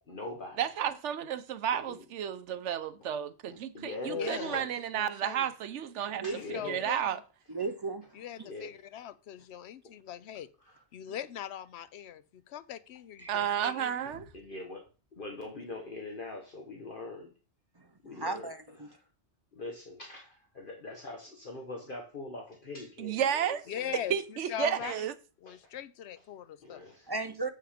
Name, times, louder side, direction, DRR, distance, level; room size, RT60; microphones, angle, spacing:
voice 1, 0.1-0.6 1.7-2.0 3.0-3.1 3.5-4.8 5.4-5.5 6.2-6.8 8.4-8.8 10.6-10.8 14.1-14.9 15.1-17.3 18.0-19.0 19.5-24.1 24.8-25.0 25.5-25.6 26.6-27.1, left 2 dB, 50° left, 1.3 m, -42 dB
voice 2, 0.6-6.2 6.6-7.2 13.3-14.3 23.0-23.6 24.1-25.1, right 9 dB, 85° right, 1.0 m, -32 dB
voice 3, 4.1-4.7 4.9-5.5 6.3-7.2 8.1-10.5 10.9-14.1 23.7-25.1 25.4-26.9, left 10 dB, 70° left, 0.9 m, -41 dB
voice 4, 6.2-6.6 7.5-8.1 13.2-13.3 18.1-18.9 27.1-27.5, right 3 dB, 35° right, 0.4 m, -35 dB
7.4 x 5.7 x 5.0 m
omnidirectional pair, 1.2 m